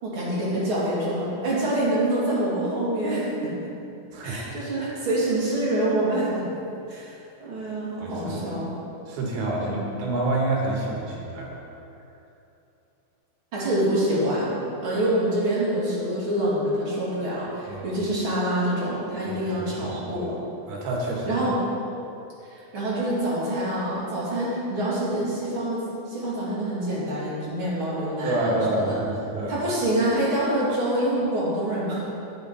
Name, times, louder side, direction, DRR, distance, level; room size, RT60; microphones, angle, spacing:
voice 1, 0.0-3.3 3.6-3.7 4.2-6.4 6.9-8.7 9.6-9.7 13.5-14.5 14.8-20.3 21.3-21.6 22.5-29.0 29.5-32.1, right 1 dB, 40° right, -8 dB, 2.8 m, -26 dB
voice 2, 8.0-8.4 9.1-9.7 10.0-11.6 17.7-17.9 19.4-20.3 20.7-21.3 28.2-29.6, right 2 dB, 80° right, -2 dB, 3.2 m, -28 dB
10.0 x 8.0 x 4.0 m, 2.8 s
omnidirectional pair, 4.3 m